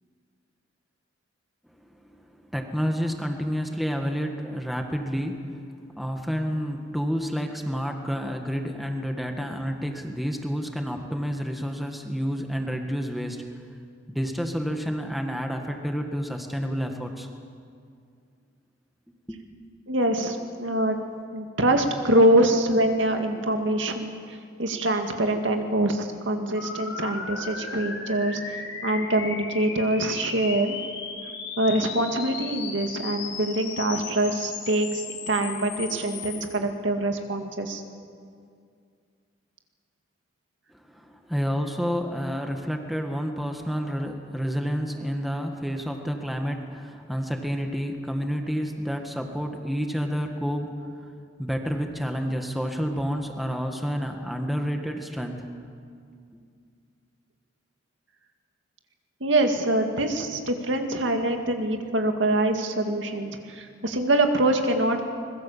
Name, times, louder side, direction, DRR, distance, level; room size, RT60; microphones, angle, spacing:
voice 1, 1.7-13.6 14.1-17.3 19.3-19.4 40.7-51.1 51.4-55.5, equal, ahead, 3 dB, 1.7 m, -29 dB
voice 2, 19.9-21.0 21.3-24.2 24.6-28.4 28.8-30.8 31.6-37.8 59.2-65.1, right 1 dB, 70° right, 4 dB, 2.1 m, -24 dB
sound 1, 26.5-36.4, left 5 dB, 75° left, 6.2 m, -36 dB
25.0 x 21.5 x 7.4 m, 2.3 s
head